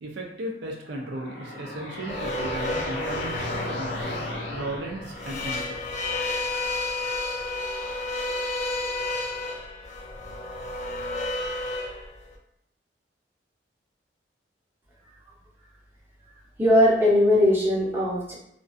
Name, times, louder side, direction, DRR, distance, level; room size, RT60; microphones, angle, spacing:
voice 1, 0.0-4.0 4.5-6.1, right 1 dB, 75° right, 0 dB, 0.4 m, -36 dB
sound 1, 0.8-5.8, left 1 dB, 90° left, 0.5 m, -36 dB
sound 2, 2.1-12.3, left 2 dB, 40° left, 0.3 m, -31 dB
voice 2, 16.6-18.3, left 1 dB, 15° right, -7 dB, 0.6 m, -19 dB
2.4 x 2.1 x 2.5 m, 0.74 s
head